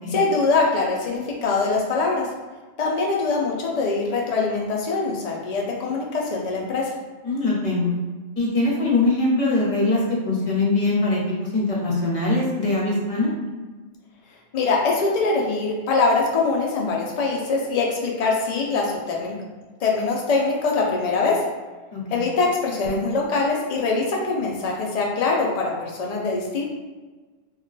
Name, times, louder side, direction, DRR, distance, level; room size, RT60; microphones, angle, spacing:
voice 1, 0.1-2.3 2.8-6.9 14.5-19.4 19.8-21.4 22.1-26.7, left 3 dB, 85° left, -2 dB, 0.3 m, -23 dB
voice 2, 7.2-7.9 8.4-11.2 11.5-13.3 21.9-22.2, left 2 dB, 35° left, -5 dB, 0.8 m, -22 dB
2.3 x 2.2 x 3.8 m, 1.3 s
omnidirectional pair, 1.2 m